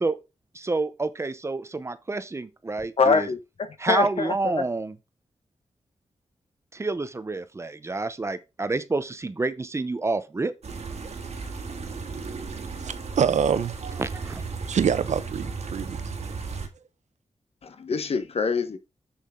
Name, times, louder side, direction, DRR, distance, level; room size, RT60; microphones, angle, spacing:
voice 1, 0.5-3.3 3.8-4.9 6.7-10.5 14.0-14.4, right 3 dB, 25° right, 0.7 m, -28 dB
voice 2, 3.0-4.6 17.6-18.8, left 5 dB, 60° left, 1.2 m, -25 dB
sound 1, 10.6-16.7, right 4 dB, 65° right, 1.8 m, -35 dB
voice 3, 12.8-14.0 14.7-16.0, right 7 dB, 85° right, 0.8 m, -25 dB
7.7 x 7.0 x 3.7 m
wide cardioid pair, 175°, 12 cm